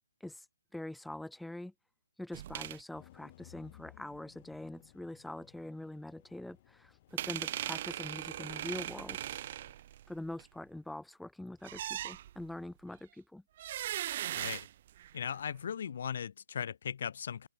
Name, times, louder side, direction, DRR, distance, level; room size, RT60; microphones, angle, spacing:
voice 1, 0.7-1.7 2.2-9.2 10.1-13.4, left 1 dB, ahead, 0.4 m, -44 dB
sound 1, 2.3-2.8 7.2-10.4 11.6-12.6 13.6-15.3, right 12 dB, 40° right, 0.6 m, -39 dB
sound 2, 2.9-9.7, left 15 dB, 35° left, 2.0 m, -60 dB
voice 2, 14.3-14.7 15.1-17.5, left 8 dB, 55° left, 1.0 m, -38 dB
open air
hypercardioid pair, 155°, 0 cm